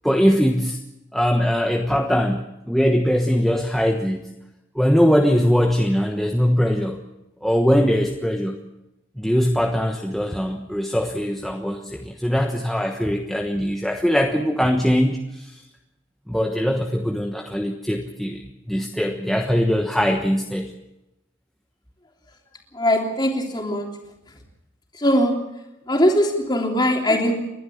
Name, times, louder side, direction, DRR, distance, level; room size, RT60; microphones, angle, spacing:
voice 1, 0.0-0.8 1.1-4.2 4.7-7.0 7.4-8.6 9.2-15.6 16.3-18.4 18.7-20.7, equal, ahead, 1 dB, 1.2 m, -21 dB
voice 2, 22.7-23.9 25.0-25.3 25.9-27.3, equal, 20° left, 1 dB, 3.3 m, -20 dB
30.0 x 12.0 x 8.5 m, 0.93 s
head